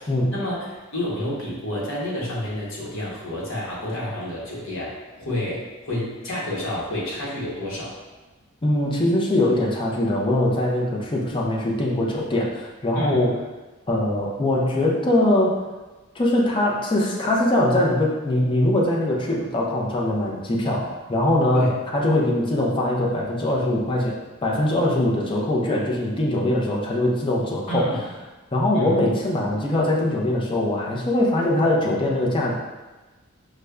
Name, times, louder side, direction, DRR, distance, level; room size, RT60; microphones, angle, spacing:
voice 1, 0.3-7.9 12.9-13.2 21.5-21.7 27.7-28.1 28.7-29.0, left 1 dB, 65° left, -6 dB, 0.9 m, -29 dB
voice 2, 8.6-13.3 13.9-15.6 16.1-24.1 24.4-27.9 28.5-32.5, left 1 dB, 25° left, -3 dB, 0.5 m, -22 dB
5.0 x 2.1 x 2.3 m, 1.2 s
head